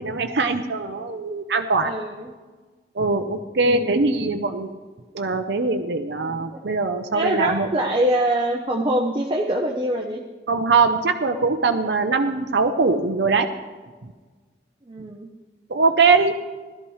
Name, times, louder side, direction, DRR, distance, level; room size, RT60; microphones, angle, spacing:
voice 1, 0.0-1.9 3.0-4.7 5.1-7.7 10.5-13.5 14.0-14.1 15.7-16.3, right 4 dB, 65° right, 6 dB, 0.6 m, -21 dB
voice 2, 1.8-2.3 3.6-4.0 6.2-6.6 7.1-10.2 14.8-15.3, right 1 dB, 25° right, 0 dB, 0.8 m, -24 dB
17.0 x 12.5 x 3.2 m, 1.4 s
head